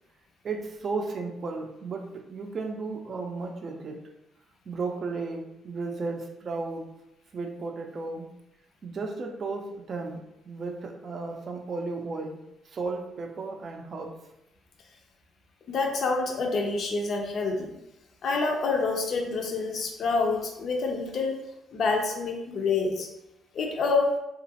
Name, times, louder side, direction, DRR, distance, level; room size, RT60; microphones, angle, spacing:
voice 1, 0.4-4.0 4.7-6.8 7.3-8.3 8.8-12.4 12.7-14.1, right 3 dB, 50° right, 3 dB, 0.4 m, -34 dB
voice 2, 15.7-17.7 18.2-21.4 21.7-23.1 23.5-24.1, left 3 dB, 60° left, 2 dB, 0.5 m, -27 dB
2.9 x 2.4 x 2.7 m, 0.89 s
cardioid pair, 90°, 0 cm